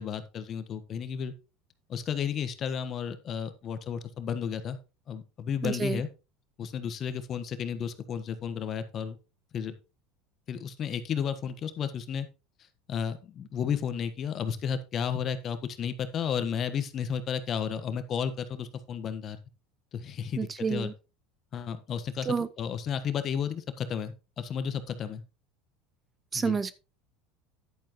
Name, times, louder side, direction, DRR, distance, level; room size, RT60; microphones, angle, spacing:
voice 1, 0.0-1.3 1.9-4.8 5.1-6.1 6.6-9.2 9.5-9.7 10.5-12.3 12.9-19.4 19.9-20.9 21.5-25.2 26.3-26.6, left 7 dB, 45° left, 1.3 m, -33 dB
voice 2, 5.6-6.0 20.4-20.9 22.3-22.5 26.3-26.7, right 5 dB, 25° right, 0.6 m, -29 dB
10.5 x 8.7 x 3.1 m
hypercardioid pair, 90°, 0 cm